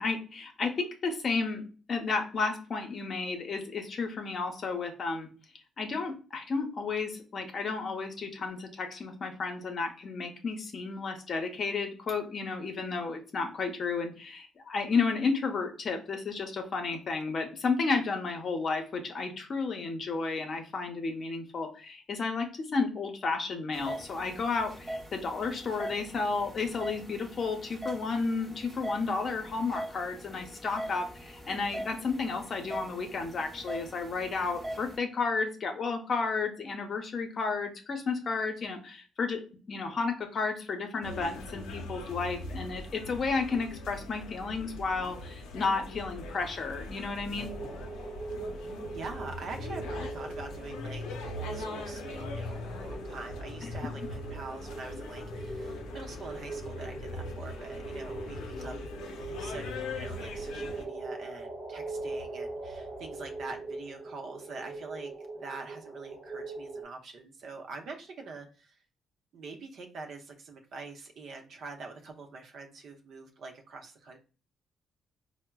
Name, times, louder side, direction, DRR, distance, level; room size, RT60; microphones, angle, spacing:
voice 1, 0.0-1.6 1.9-5.3 5.8-47.5 53.6-53.7, left 4 dB, 50° left, 4 dB, 0.7 m, -32 dB
sound 1, 23.7-35.0, right 1 dB, 15° right, 0.8 m, -42 dB
sound 2, 41.0-60.9, left 2 dB, 90° left, 0.5 m, -41 dB
sound 3, 47.4-66.8, right 3 dB, 40° right, 1.1 m, -41 dB
voice 2, 48.5-51.1 51.3-68.8 69.3-74.2, right 3 dB, 65° right, 3 dB, 0.6 m, -45 dB
4.5 x 2.1 x 2.2 m, 0.36 s
cardioid pair, 90°, 0 cm